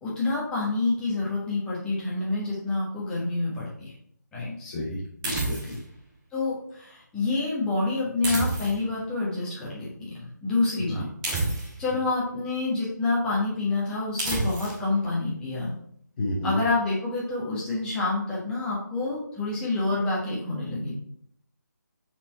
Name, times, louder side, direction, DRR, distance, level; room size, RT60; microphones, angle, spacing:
voice 1, 0.0-3.9 4.3-4.5 6.3-11.0 11.3-11.4 11.8-15.8 16.4-20.9, left 3 dB, 10° left, -7 dB, 1.5 m, -28 dB
voice 2, 4.6-5.6 10.9-11.1 11.9-12.0 16.2-16.6, left 1 dB, 30° left, -4 dB, 0.9 m, -31 dB
sound 1, 5.2-5.9 8.2-9.0 11.2-11.9 14.2-14.8, right 2 dB, 15° right, 1.9 m, -29 dB
5.6 x 4.5 x 4.4 m, 0.68 s
figure-of-eight pair, 155°, 10 cm